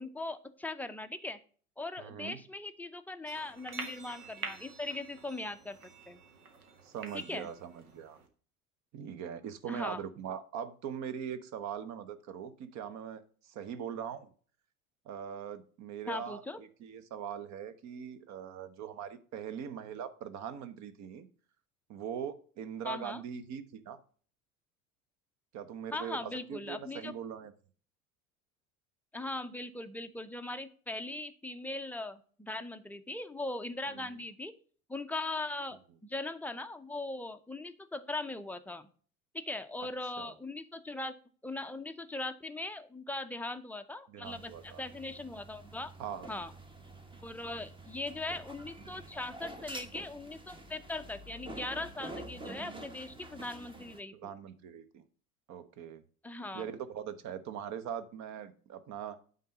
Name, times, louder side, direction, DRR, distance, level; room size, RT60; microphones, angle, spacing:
voice 1, 0.0-1.4 1.8-5.8 6.1-6.2 7.1-7.5 9.7-10.0 16.1-16.6 22.8-23.2 25.9-27.1 29.1-34.5 34.9-35.8 36.1-38.9 39.3-41.1 41.4-45.9 46.3-46.5 47.2-54.3 56.2-56.7, left 2 dB, 5° left, 8 dB, 0.5 m, -40 dB
voice 2, 2.0-2.4 6.8-8.2 8.9-14.3 15.0-21.3 21.9-24.0 25.5-27.5 33.9-34.2 40.2-40.3 44.1-44.8 46.0-46.3 54.1-55.0 55.5-56.0 56.5-59.2, right 8 dB, 40° right, 13 dB, 1.0 m, -41 dB
sound 1, 3.3-8.3, right 4 dB, 80° right, 1.4 m, -47 dB
sound 2, 44.2-54.0, right 2 dB, 10° right, 1.1 m, -48 dB
9.1 x 3.9 x 5.3 m, 0.43 s
figure-of-eight pair, 75°, 43 cm